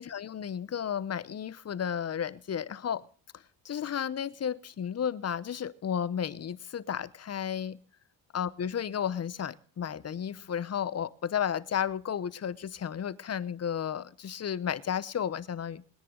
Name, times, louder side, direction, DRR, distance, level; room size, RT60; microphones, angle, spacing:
voice 1, 0.0-3.0 3.6-7.8 8.3-15.8, left 8 dB, 35° left, 0.8 m, -33 dB
21.5 x 10.0 x 3.8 m
cardioid pair, 95°, 43 cm